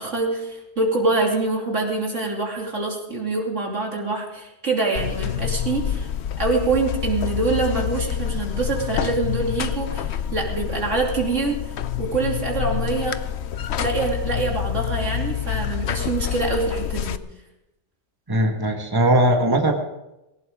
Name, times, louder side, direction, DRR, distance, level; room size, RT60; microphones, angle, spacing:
voice 1, 0.0-6.1 6.4-11.6 12.0-13.2 13.8-17.2, right 3 dB, 85° right, -1 dB, 3.3 m, -25 dB
Buzz, 5.0-17.2, left 10 dB, 65° left, 0.9 m, -27 dB
voice 2, 18.3-19.7, right 1 dB, 20° right, 2 dB, 1.7 m, -19 dB
20.0 x 17.5 x 3.7 m, 0.94 s
omnidirectional pair, 1.2 m